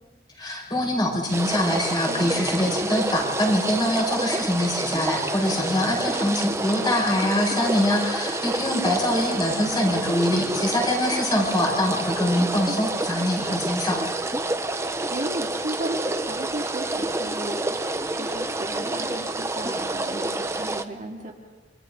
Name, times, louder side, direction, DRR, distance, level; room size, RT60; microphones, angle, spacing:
voice 1, 0.4-14.0, left 1 dB, 25° left, -1 dB, 6.2 m, -24 dB
sound 1, 1.3-20.8, right 2 dB, 15° right, 0.8 m, -28 dB
voice 2, 2.1-2.4 4.1-4.3 15.1-21.3, right 1 dB, 40° right, -1 dB, 2.6 m, -35 dB
28.5 x 27.5 x 3.9 m, 1.4 s
head